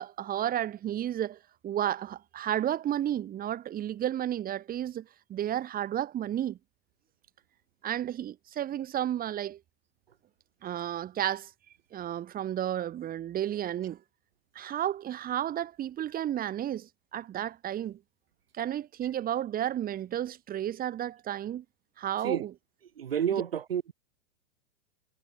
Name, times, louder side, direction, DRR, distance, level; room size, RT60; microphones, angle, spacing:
voice 1, 0.0-6.6 7.8-9.6 10.6-11.5 11.9-14.0 14.6-18.0 18.5-21.6 22.0-22.5 23.3-23.4, right 11 dB, 30° right, 5.4 m, -32 dB
voice 2, 23.0-23.9, right 9 dB, 75° right, 1.7 m, -29 dB
hypercardioid pair, 100°, 30 cm